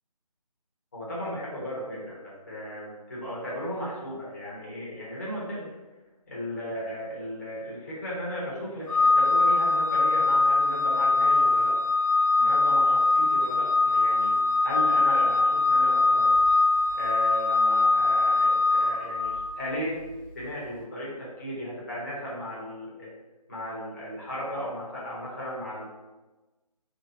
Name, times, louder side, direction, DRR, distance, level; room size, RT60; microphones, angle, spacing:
voice 1, 0.9-5.7 6.3-11.8 12.4-14.3 14.6-16.3 17.0-20.0 20.3-23.1 23.5-25.8, equal, 25° left, -6 dB, 1.0 m, -35 dB
Organ, 8.9-19.6, left 3 dB, 60° left, 1.0 m, -22 dB
3.3 x 2.7 x 4.0 m, 1.1 s
figure-of-eight pair, 160°, 20 cm